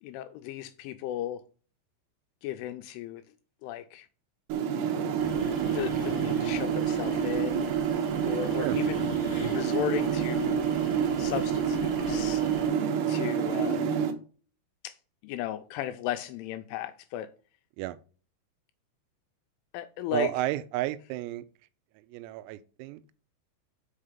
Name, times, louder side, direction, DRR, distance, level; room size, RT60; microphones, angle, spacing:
voice 1, 0.0-1.4 2.4-3.2 3.6-4.1 5.7-7.7 8.2-9.1 9.5-10.6 11.2-12.4 13.1-13.9 14.8-15.0 15.2-17.3 19.7-20.3, left 11 dB, 85° left, 2.8 m, -35 dB
sound 1, 4.5-14.1, right 7 dB, 70° right, 2.6 m, -28 dB
sound 2, 5.2-12.7, left 5 dB, 40° left, 1.5 m, -45 dB
voice 2, 20.1-21.5 22.1-23.2, right 15 dB, 90° right, 3.3 m, -32 dB
6.6 x 5.5 x 5.0 m
omnidirectional pair, 6.0 m